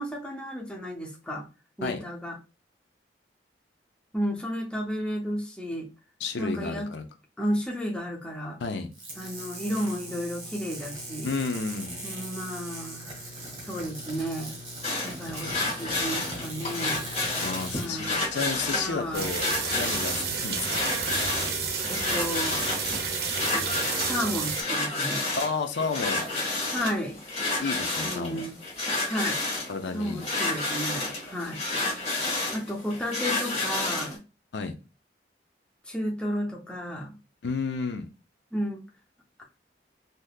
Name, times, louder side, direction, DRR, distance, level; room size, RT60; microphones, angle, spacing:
voice 1, 0.0-1.5 1.8-2.4 4.1-5.9 6.4-6.9 7.4-8.6 9.2-11.3 12.0-13.2 13.6-14.6 15.0-17.1 17.7-18.3 18.8-19.3 21.9-22.6 24.0-25.3 26.7-27.2 28.0-28.6 29.0-29.4 29.9-31.6 32.5-34.2 35.9-37.2 38.5-38.8, equal, 5° left, 0.6 m, -32 dB
voice 2, 6.2-7.0 8.6-8.9 11.2-12.0 17.4-19.4 19.7-20.8 25.4-26.3 27.6-28.5 29.7-30.2 34.5-34.8 37.4-38.1, left 4 dB, 80° left, 0.5 m, -31 dB
sound 1, 8.9-17.9, right 1 dB, 30° right, 1.2 m, -39 dB
sound 2, 14.8-34.2, left 2 dB, 40° left, 1.5 m, -30 dB
sound 3, 19.1-24.6, right 5 dB, 60° right, 0.6 m, -30 dB
3.4 x 2.7 x 2.3 m
head